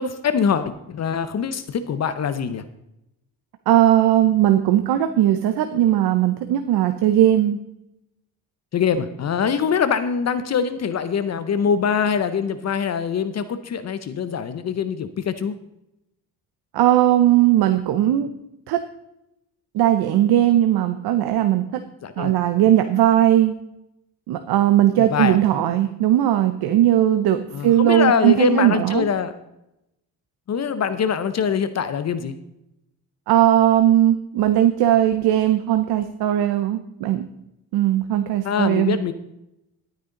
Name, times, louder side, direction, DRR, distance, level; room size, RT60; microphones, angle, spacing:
voice 1, 0.0-2.6 8.7-15.5 22.0-22.3 25.0-25.4 27.5-29.3 30.5-32.3 38.4-39.1, left 7 dB, 40° left, 12 dB, 0.8 m, -23 dB
voice 2, 3.7-7.6 16.7-18.3 18.7-18.8 19.7-21.8 22.2-23.5 24.3-29.0 33.3-37.2 37.7-39.0, right 12 dB, 75° right, 9 dB, 0.9 m, -18 dB
12.5 x 9.2 x 3.8 m, 0.86 s
cardioid pair, 120°, 38 cm